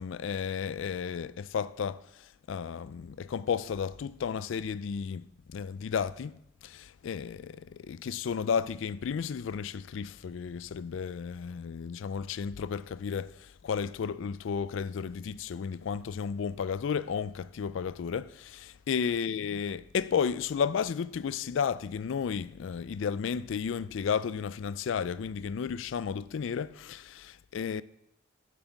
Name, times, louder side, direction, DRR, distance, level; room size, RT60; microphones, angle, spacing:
voice 1, 0.0-2.0 2.5-5.2 5.5-6.3 6.6-27.8, left 6 dB, 65° left, 0.4 m, -33 dB
10.0 x 7.9 x 7.2 m
head